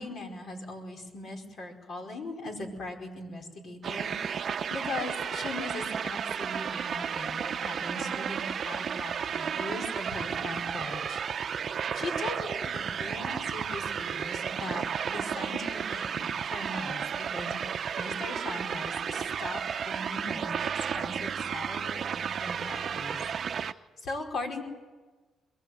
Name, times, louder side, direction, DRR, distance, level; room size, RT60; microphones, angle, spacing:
voice 1, 0.0-11.2 11.5-19.6 19.8-20.7 20.9-23.2 23.6-24.6, left 2 dB, 60° left, 3 dB, 5.1 m, -40 dB
sound 1, 3.8-23.7, right 7 dB, 55° right, 0.7 m, -33 dB
23.0 x 22.0 x 8.0 m, 1.3 s
cardioid pair, 90°, 0 cm